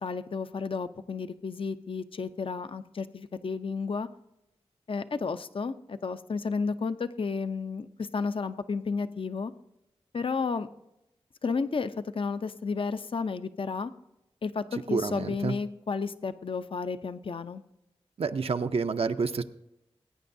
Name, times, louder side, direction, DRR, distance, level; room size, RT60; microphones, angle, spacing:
voice 1, 0.0-4.1 4.9-9.5 10.1-10.7 11.4-13.9 14.4-17.6, left 4 dB, 55° left, 11 dB, 0.6 m, -32 dB
voice 2, 14.7-15.5 18.2-19.4, right 4 dB, 65° right, 8 dB, 0.6 m, -29 dB
20.5 x 9.2 x 2.7 m, 0.86 s
wide cardioid pair, 65°, 11 cm